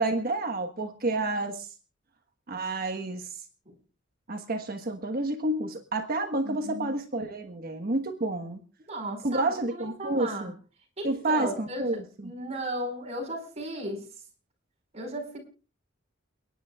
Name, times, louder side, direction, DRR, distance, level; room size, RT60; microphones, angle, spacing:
voice 1, 0.0-1.7 2.5-3.4 4.3-8.6 9.2-10.5 11.0-12.3, right 2 dB, 50° right, 5 dB, 1.3 m, -29 dB
voice 2, 6.4-6.9 8.9-10.5 11.0-14.1 14.9-15.4, right 1 dB, 35° right, 2 dB, 4.8 m, -36 dB
29.5 x 10.5 x 2.4 m, 0.33 s
head